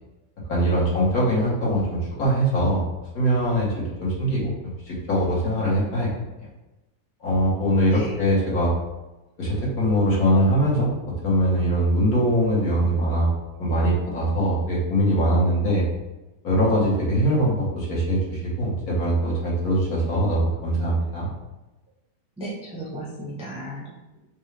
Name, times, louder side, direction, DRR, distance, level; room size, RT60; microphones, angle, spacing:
voice 1, 0.5-2.8 3.2-4.5 4.9-6.1 7.2-8.7 9.4-10.9 11.2-13.3 13.6-15.8 16.4-21.3, equal, 65° left, -6 dB, 1.7 m, -22 dB
voice 2, 22.4-24.2, right 1 dB, 5° right, -6 dB, 0.7 m, -35 dB
5.3 x 2.2 x 3.3 m, 1.0 s
omnidirectional pair, 1.7 m